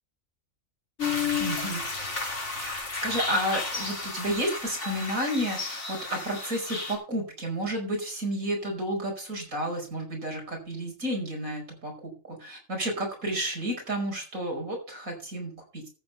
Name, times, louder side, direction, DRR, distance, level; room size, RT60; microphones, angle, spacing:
sound 1, 1.0-6.9, left 4 dB, 55° left, 3.5 m, -32 dB
voice 1, 1.4-1.8 2.5-15.9, equal, 80° right, 1 dB, 5.6 m, -31 dB
14.0 x 7.4 x 5.5 m, 0.37 s
omnidirectional pair, 1.4 m